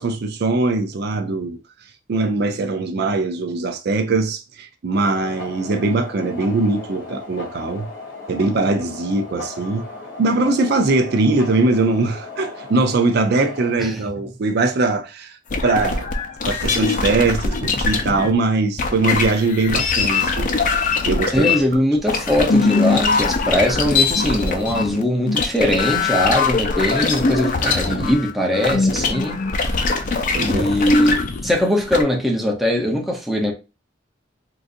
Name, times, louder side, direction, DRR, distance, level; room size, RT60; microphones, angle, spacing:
voice 1, 0.0-1.6 2.1-7.9 8.3-9.8 10.2-15.4 15.6-16.1 16.5-20.6 21.0-21.6 30.3-30.7, right 3 dB, 55° right, 0.4 m, -21 dB
sound 1, 4.9-13.7, left 2 dB, 80° left, 1.2 m, -36 dB
sound 2, 15.5-18.3 18.8-32.0, left 4 dB, 45° left, 0.5 m, -21 dB
voice 2, 21.3-29.4 30.3-33.5, equal, ahead, 0.7 m, -20 dB
3.8 x 2.5 x 2.5 m
head